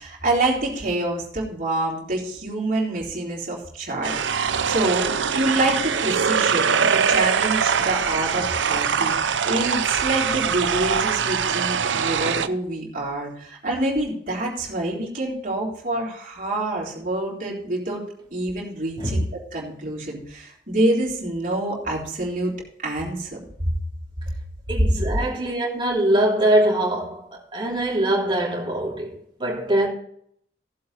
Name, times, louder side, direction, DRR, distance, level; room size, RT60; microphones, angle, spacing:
voice 1, 0.0-5.1 5.4-18.0 18.3-19.2 19.5-22.5 22.8-23.4, right 2 dB, 45° right, 3.7 m, -26 dB
sound 1, 4.0-12.5, right 6 dB, 85° right, 0.6 m, -22 dB
voice 2, 24.7-29.9, right 1 dB, 25° right, 3.1 m, -23 dB
15.5 x 7.7 x 4.2 m
head